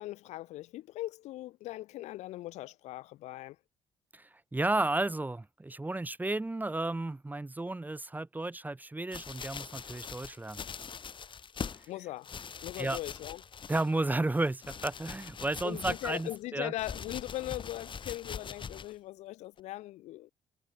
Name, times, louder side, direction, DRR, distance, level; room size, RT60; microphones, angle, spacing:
voice 1, 0.0-3.6 11.9-12.3 12.6-13.4 15.6-20.3, left 16 dB, 80° left, 2.2 m, -40 dB
voice 2, 4.1-10.6 12.8-13.0 13.7-16.7, right 2 dB, 15° right, 1.1 m, -33 dB
sound 1, 9.1-11.9 12.2-14.1 14.4-16.4 16.8-19.0 19.6-19.7, left 6 dB, 45° left, 2.3 m, -43 dB
supercardioid pair, 70°, 12 cm